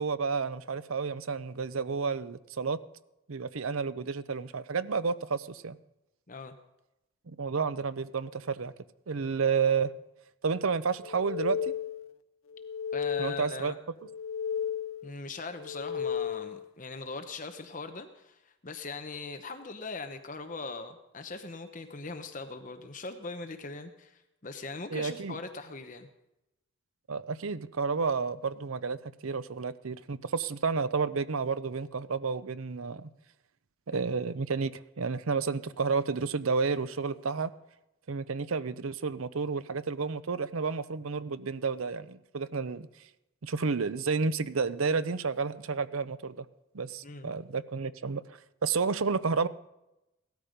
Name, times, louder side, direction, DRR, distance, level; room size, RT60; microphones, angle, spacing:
voice 1, 0.0-2.8 3.3-5.8 7.3-8.7 9.1-9.9 10.4-11.7 13.2-13.7 24.9-25.4 27.1-29.0 29.2-33.1 33.9-37.5 38.1-42.9 43.4-46.5 46.7-49.5, right 5 dB, 75° right, 14 dB, 0.7 m, -31 dB
sound 1, 11.0-12.2 12.5-13.7 14.0-15.2 15.6-16.7, left 8 dB, 75° left, 0.6 m, -34 dB
voice 2, 12.9-13.8 15.0-26.1 47.0-47.3, left 3 dB, 35° left, 7 dB, 0.9 m, -40 dB
17.0 x 13.0 x 5.2 m, 0.91 s
head